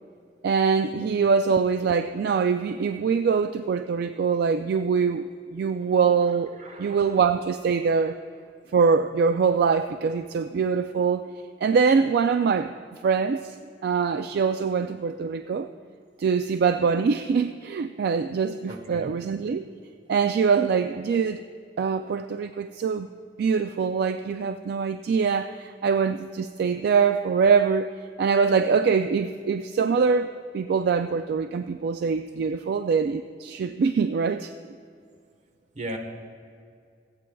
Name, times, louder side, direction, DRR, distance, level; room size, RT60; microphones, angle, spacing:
voice 1, 0.4-8.2 8.7-11.2 11.6-12.8 13.0-13.6 13.8-15.7 16.2-19.6 20.1-21.4 21.8-23.1 23.4-27.9 28.2-34.5, right 5 dB, 60° right, 9 dB, 0.3 m, -23 dB
voice 2, 6.6-7.2 18.7-19.1 35.7-36.0, right 1 dB, 45° right, 4 dB, 1.2 m, -37 dB
26.0 x 8.8 x 2.3 m, 2.3 s
head